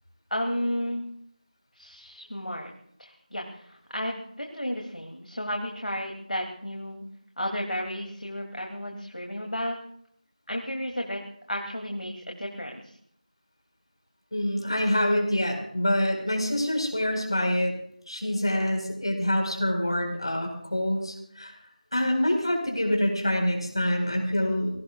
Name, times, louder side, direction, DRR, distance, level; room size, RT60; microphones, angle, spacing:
voice 1, 0.3-1.0 1.7-2.7 3.0-7.0 7.4-9.8 10.5-11.2 11.5-13.0, equal, 85° left, 1 dB, 2.8 m, -33 dB
voice 2, 14.3-17.7 18.1-21.5 21.9-24.7, left 1 dB, 40° left, 2 dB, 4.7 m, -26 dB
30.0 x 18.0 x 2.4 m, 0.67 s
figure-of-eight pair, 175°, 4 cm